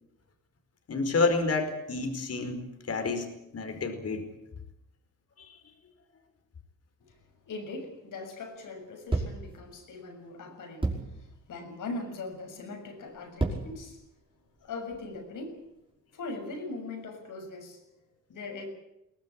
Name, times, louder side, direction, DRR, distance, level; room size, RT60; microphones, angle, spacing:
voice 1, 0.9-3.3 3.5-4.2 5.4-5.5, left 3 dB, 50° left, 6 dB, 4.9 m, -29 dB
voice 2, 7.5-14.0 14.6-15.6 16.1-17.8 18.3-18.7, left 3 dB, 70° left, 4 dB, 7.1 m, -40 dB
sound 1, 9.1-9.5 10.8-11.2 12.0-12.3 13.1-13.8 14.4-15.3, right 2 dB, 15° right, 5.6 m, -31 dB
22.5 x 19.0 x 8.7 m, 0.87 s
cardioid pair, 105°, 33 cm